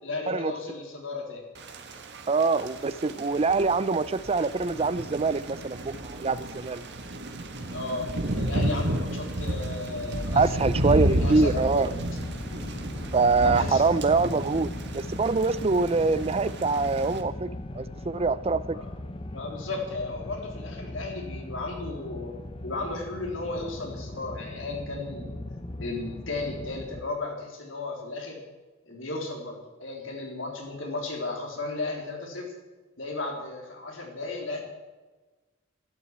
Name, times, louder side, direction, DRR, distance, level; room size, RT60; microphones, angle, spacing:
voice 1, 0.0-1.4 7.7-11.9 13.4-13.8 18.2-18.3 18.7-18.9 19.3-22.4 22.6-25.4 25.8-28.4 28.8-32.5 33.0-34.6, left 3 dB, 75° left, 3.7 m, -35 dB
Thunder / Rain, 1.6-17.2, right 1 dB, 60° right, 1.6 m, -32 dB
voice 2, 2.3-6.8 10.3-11.9 13.1-17.5 17.7-18.8, right 4 dB, 30° right, 0.5 m, -24 dB
sound 1, 10.6-27.0, left 1 dB, 25° left, 0.9 m, -39 dB
12.5 x 12.0 x 8.9 m
head